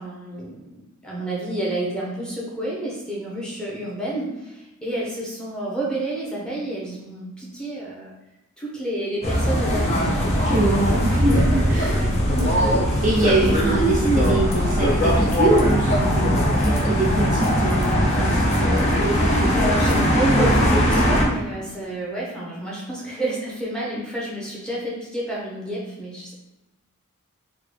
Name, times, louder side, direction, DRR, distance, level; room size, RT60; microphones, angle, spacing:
voice 1, 0.0-8.1 8.6-10.1 11.9-12.2 19.4-26.3, right 1 dB, 5° left, -6 dB, 0.8 m, -29 dB
sound 1, 9.2-21.2, equal, 30° left, 0.6 m, -20 dB
voice 2, 10.5-12.0 12.3-18.9 19.2-19.5, right 2 dB, 35° right, -4 dB, 0.5 m, -24 dB
3.7 x 2.2 x 3.3 m, 1.0 s
head